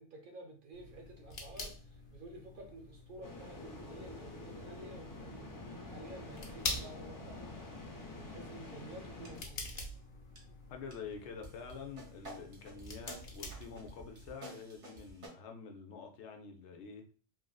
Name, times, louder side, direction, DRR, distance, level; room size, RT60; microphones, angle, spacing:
voice 1, 0.0-7.5 8.1-9.9 13.1-13.2, right 2 dB, 55° right, 2 dB, 0.7 m, -52 dB
sound 1, 0.7-14.3, left 2 dB, 50° left, 0.7 m, -47 dB
sound 2, 3.2-9.4, left 2 dB, 30° left, 0.3 m, -47 dB
sound 3, 9.3-9.4 9.8-10.0 10.4-10.5 10.9-11.0 11.4-15.3, right 2 dB, 90° right, 1.2 m, -52 dB
voice 2, 10.7-17.0, left 5 dB, 80° left, 4 dB, 0.9 m, -47 dB
3.1 x 2.5 x 2.3 m, 0.40 s
omnidirectional pair, 1.2 m